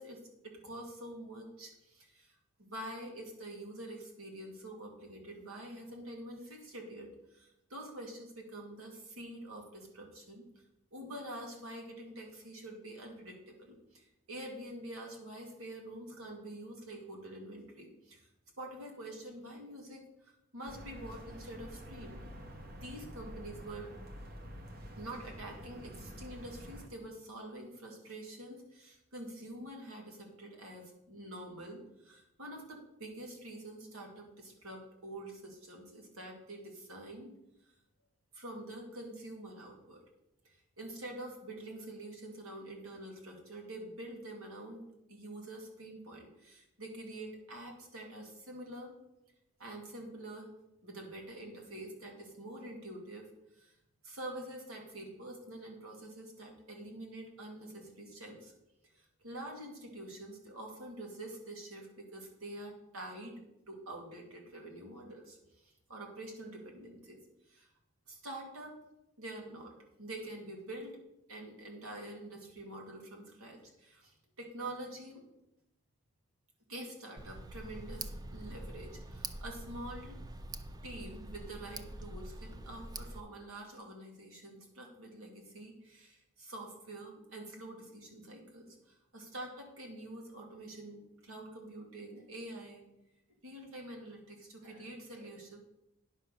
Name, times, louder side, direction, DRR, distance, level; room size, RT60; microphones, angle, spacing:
voice 1, 0.0-10.4 10.9-18.3 18.6-22.2 22.6-23.9 25.0-37.3 38.3-40.0 40.4-44.8 45.1-48.9 49.6-50.5 50.8-53.3 53.6-53.8 54.0-58.5 58.9-67.2 67.5-67.7 68.1-68.8 69.2-71.0 71.3-75.3 76.7-80.2 80.8-92.8 93.4-95.6, right 1 dB, 80° right, 1 dB, 2.4 m, -46 dB
sound 1, 20.6-26.9, equal, 45° right, 1.1 m, -48 dB
Tick, 77.2-83.2, right 2 dB, 20° right, 0.4 m, -45 dB
9.9 x 5.7 x 6.6 m, 0.88 s
head